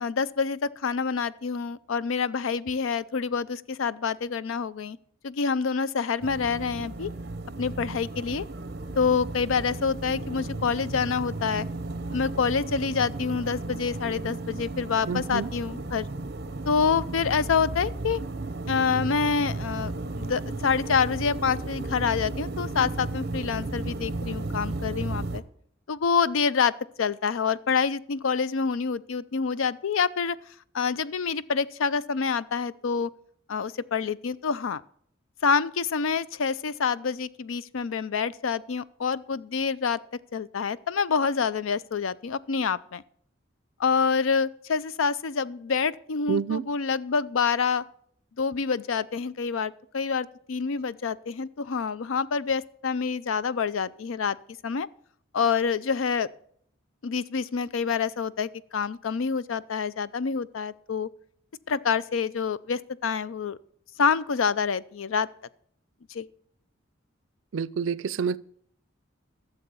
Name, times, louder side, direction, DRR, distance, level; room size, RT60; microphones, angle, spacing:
voice 1, 0.0-5.0 5.2-7.1 7.6-8.4 9.0-11.7 12.1-16.1 16.7-18.2 18.7-25.4 25.9-30.4 30.7-33.1 33.5-34.8 35.4-40.0 40.3-43.0 43.8-47.8 48.4-54.4 54.6-54.9 55.3-56.3 57.0-61.1 61.7-63.6 64.0-65.3 66.1-66.3, left 5 dB, 85° left, 0.5 m, -27 dB
sound 1, 6.2-25.4, right 2 dB, 55° right, 0.8 m, -34 dB
voice 2, 15.1-15.5 46.3-46.6 67.5-68.4, right 6 dB, 80° right, 0.4 m, -28 dB
12.5 x 7.1 x 6.8 m
head